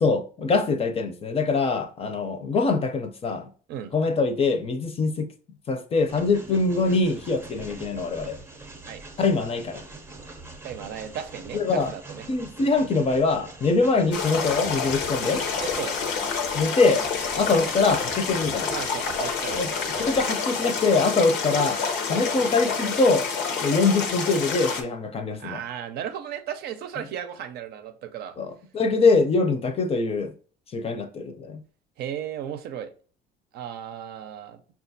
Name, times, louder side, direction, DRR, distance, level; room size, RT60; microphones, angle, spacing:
voice 1, 0.0-3.5 3.9-5.3 5.7-8.4 9.2-9.8 11.5-11.9 12.3-15.4 16.5-17.0 17.3-18.7 19.6-19.7 20.0-21.8 22.1-23.3 23.6-25.6 28.4-30.3 30.7-31.6, left 3 dB, 35° left, 0.5 m, -23 dB
Train, 6.1-20.4, right 2 dB, 15° right, 0.6 m, -44 dB
voice 2, 10.6-12.3 15.6-15.9 18.7-20.3 25.4-28.4 32.0-32.9 33.5-34.6, right 9 dB, 70° right, 0.5 m, -35 dB
sound 1, 14.1-24.8, left 5 dB, 85° left, 0.8 m, -28 dB
5.7 x 2.4 x 2.6 m
cardioid pair, 110°, 17 cm